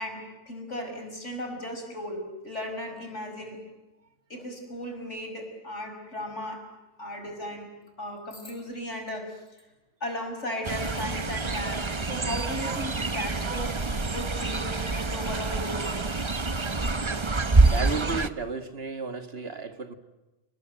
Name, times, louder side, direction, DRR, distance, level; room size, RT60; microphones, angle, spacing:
voice 1, 0.0-3.6 4.3-6.7 7.0-7.7 8.0-9.4 10.0-13.8 14.1-15.9, left 1 dB, 80° left, 4 dB, 6.2 m, -36 dB
Fowl, 10.6-18.3, right 3 dB, 25° right, 1.0 m, -26 dB
voice 2, 17.7-19.9, right 4 dB, 55° right, 8 dB, 2.1 m, -33 dB
29.5 x 21.0 x 9.2 m, 1.0 s
omnidirectional pair, 1.2 m